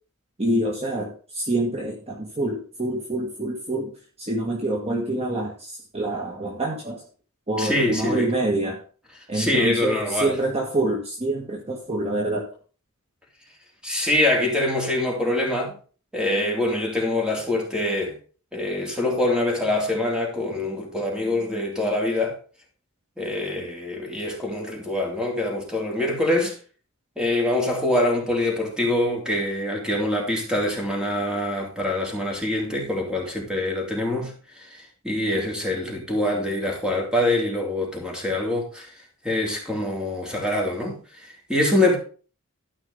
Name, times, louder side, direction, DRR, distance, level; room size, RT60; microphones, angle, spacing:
voice 1, 0.4-3.9 4.2-7.0 7.5-8.8 9.3-12.5, right 1 dB, 30° right, 1.8 m, -26 dB
voice 2, 7.6-8.3 9.3-10.3 13.8-15.8 16.1-18.2 18.5-22.4 23.2-26.6 27.2-38.9 39.2-42.0, left 1 dB, 5° right, 3.4 m, -24 dB
13.0 x 5.4 x 5.4 m
head